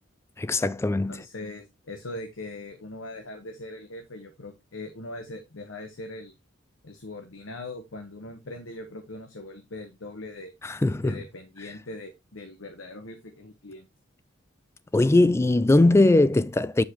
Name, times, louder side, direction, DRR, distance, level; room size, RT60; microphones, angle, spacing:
voice 1, 0.4-1.2 10.6-11.2 14.9-16.8, left 2 dB, 15° left, 0.3 m, -20 dB
voice 2, 1.1-6.4 6.8-10.5 11.0-13.9, left 2 dB, 80° left, 1.1 m, -40 dB
8.3 x 5.3 x 2.9 m
head